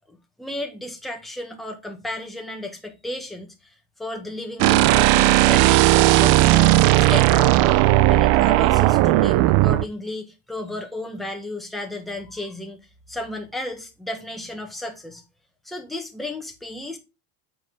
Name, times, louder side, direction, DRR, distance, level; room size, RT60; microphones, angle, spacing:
voice 1, 0.1-3.5 4.0-7.8 8.1-12.8 13.1-15.2 15.6-17.0, left 1 dB, ahead, 1.5 m, -33 dB
sound 1, 4.6-9.8, right 16 dB, 80° right, 0.6 m, -16 dB
7.6 x 5.1 x 3.6 m
cardioid pair, 115°, 38 cm